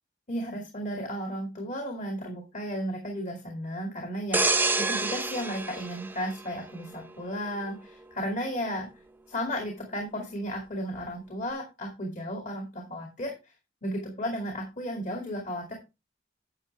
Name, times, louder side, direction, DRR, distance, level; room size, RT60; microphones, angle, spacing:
voice 1, 0.3-8.9 9.3-13.5 13.8-15.7, equal, 45° left, 1 dB, 2.5 m, -34 dB
sound 1, 4.3-7.0 7.5-7.7, right 3 dB, 10° right, 0.6 m, -28 dB
11.5 x 7.0 x 3.3 m, 0.26 s
head